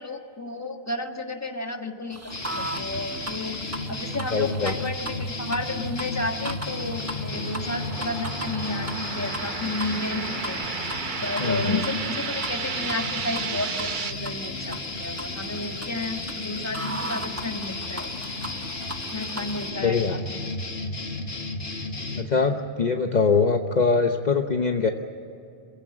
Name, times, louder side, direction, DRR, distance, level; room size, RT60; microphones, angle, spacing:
voice 1, 0.0-2.2 2.6-3.6 3.9-10.6 11.2-18.1 19.1-20.5 22.1-22.3, left 2 dB, 15° left, 4 dB, 1.6 m, -32 dB
sound 1, 2.1-19.7, right 1 dB, 15° right, 1.1 m, -39 dB
sound 2, 2.3-22.2, left 2 dB, 70° left, 2.1 m, -33 dB
voice 2, 4.3-4.7 11.4-11.8 19.8-20.1 22.1-24.9, left 4 dB, 45° left, 5 dB, 1.0 m, -23 dB
sound 3, 5.7-14.1, right 7 dB, 55° right, 0.8 m, -34 dB
27.0 x 16.0 x 8.7 m, 2.5 s
omnidirectional pair, 1.1 m